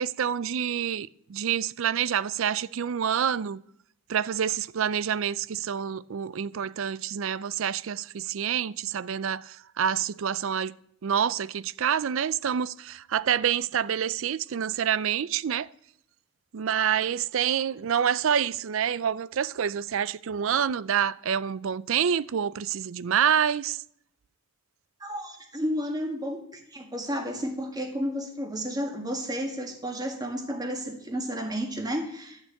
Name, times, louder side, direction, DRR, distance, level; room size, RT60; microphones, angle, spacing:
voice 1, 0.0-3.6 4.1-10.8 11.0-15.7 16.5-23.8, right 8 dB, 65° right, 0.4 m, -27 dB
voice 2, 25.0-32.4, equal, 15° right, 1.9 m, -32 dB
13.0 x 6.7 x 8.4 m
head